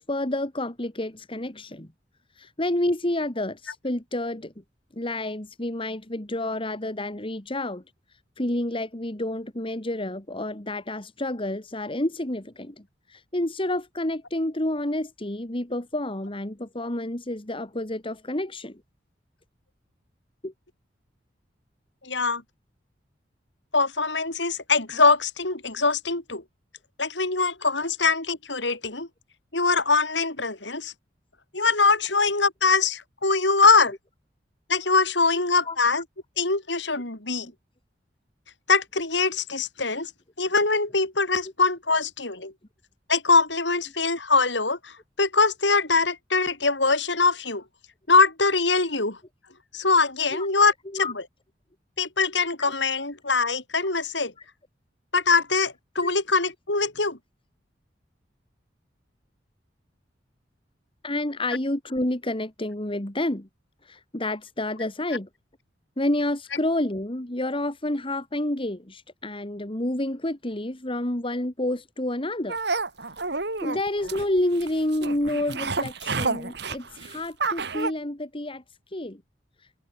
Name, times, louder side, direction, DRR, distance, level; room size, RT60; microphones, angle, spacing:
voice 1, 0.0-1.9 2.4-4.5 4.9-7.8 8.4-12.8 13.1-18.8 20.4-20.5 35.4-35.8 37.4-37.5 50.3-50.5 50.9-51.1 56.0-56.1 61.0-63.5 63.8-65.3 66.0-72.6 73.6-78.6 78.9-79.2, left 1 dB, 30° left, 2.3 m, -29 dB
voice 2, 22.0-22.4 23.7-26.4 27.0-29.1 29.5-30.9 31.5-33.9 34.7-36.0 36.4-37.5 38.7-40.1 40.4-42.5 43.1-47.6 48.1-49.2 49.7-51.2 52.0-54.3 55.1-57.2, left 4 dB, 75° left, 7.3 m, -23 dB
sound 1, 72.5-77.9, right 3 dB, 65° right, 3.9 m, -30 dB
head